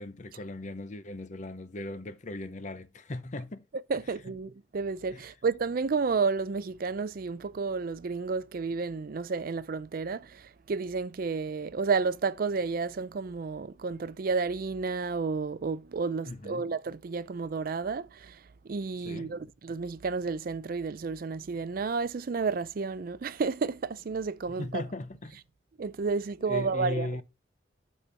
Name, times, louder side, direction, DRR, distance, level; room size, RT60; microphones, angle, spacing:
voice 1, 0.0-3.6 5.1-5.2 16.3-16.7 19.0-19.3 24.6-25.4 26.5-27.2, left 2 dB, 40° left, 0.7 m, -38 dB
voice 2, 3.9-18.4 18.7-24.8 25.8-27.1, right 4 dB, 50° right, 0.4 m, -31 dB
12.0 x 4.4 x 3.4 m
head